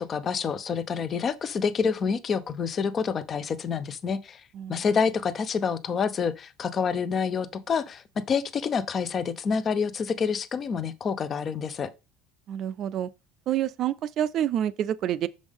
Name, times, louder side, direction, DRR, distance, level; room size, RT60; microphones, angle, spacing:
voice 1, 0.0-4.4 4.7-11.9, left 6 dB, 30° left, 0.5 m, -28 dB
voice 2, 12.5-13.1 13.5-15.3, right 11 dB, 40° right, 0.4 m, -28 dB
6.3 x 5.1 x 3.5 m
cardioid pair, 155°, 0 cm